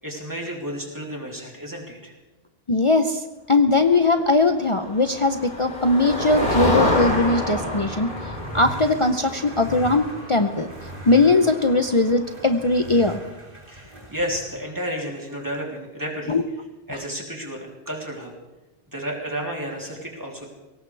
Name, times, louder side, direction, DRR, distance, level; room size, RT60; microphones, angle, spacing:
voice 1, 0.0-2.1 13.7-16.4 16.9-18.3 18.9-20.5, equal, 20° right, -1 dB, 3.2 m, -32 dB
voice 2, 2.7-8.1 8.5-10.7 11.1-13.2 16.3-16.4, left 2 dB, 35° left, 6 dB, 0.7 m, -20 dB
Motor vehicle (road), 4.6-12.4, left 1 dB, 55° left, 3.7 m, -28 dB
sound 1, 6.9-14.5, right 1 dB, 55° right, 3.1 m, -40 dB
22.0 x 18.0 x 3.4 m, 1.1 s
omnidirectional pair, 1.1 m